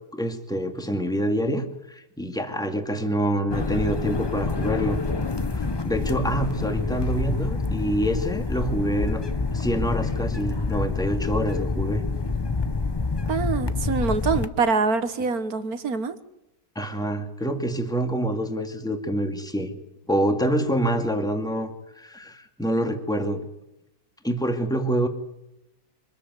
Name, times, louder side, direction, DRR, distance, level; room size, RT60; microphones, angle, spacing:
voice 1, 0.1-5.0 5.5-9.2 9.5-12.0 16.8-19.7 20.1-21.7 22.0-23.4 24.2-25.1, right 1 dB, ahead, 5 dB, 2.2 m, -26 dB
so delta, 3.5-14.5, left 3 dB, 35° left, 0.4 m, -27 dB
voice 2, 13.3-16.2, right 4 dB, 60° right, 11 dB, 1.8 m, -25 dB
25.0 x 13.5 x 9.6 m, 0.88 s
omnidirectional pair, 1.9 m